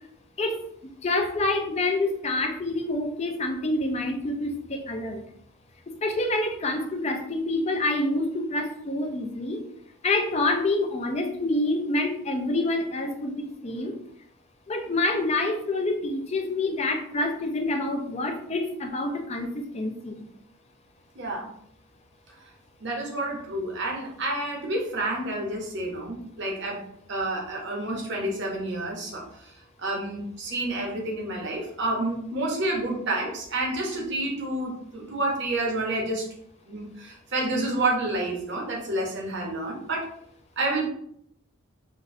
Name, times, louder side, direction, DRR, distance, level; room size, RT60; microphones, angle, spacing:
voice 1, 1.0-5.2 6.0-9.6 10.0-13.9 14.7-20.2, left 2 dB, 30° left, 4 dB, 0.4 m, -27 dB
voice 2, 21.1-21.5 22.4-22.5 22.8-26.8 27.1-29.5 29.8-36.3 36.7-40.1 40.6-40.9, right 2 dB, 55° right, -1 dB, 0.8 m, -29 dB
3.8 x 2.1 x 2.6 m, 0.69 s
head